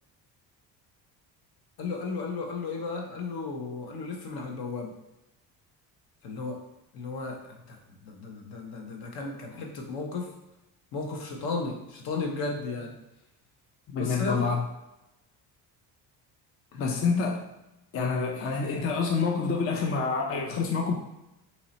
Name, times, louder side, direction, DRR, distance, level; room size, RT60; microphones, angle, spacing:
voice 1, 1.8-4.9 6.2-6.7 6.9-10.3 10.9-13.0 14.0-14.6 16.7-16.8, left 3 dB, 65° left, 1 dB, 0.9 m, -34 dB
voice 2, 13.9-14.6 16.8-17.5 17.9-20.9, left 5 dB, 35° left, 1 dB, 0.5 m, -27 dB
3.0 x 2.8 x 4.0 m, 0.93 s
cardioid pair, 115°, 42 cm